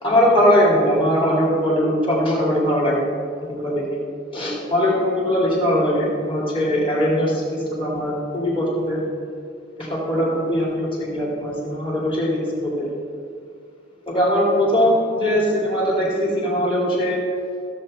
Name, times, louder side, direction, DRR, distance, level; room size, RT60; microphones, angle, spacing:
voice 1, 0.0-3.1 3.4-3.9 4.3-9.0 9.8-12.9 14.1-17.2, equal, 25° left, -4 dB, 2.8 m, -20 dB
15.0 x 7.6 x 4.4 m, 2.4 s
head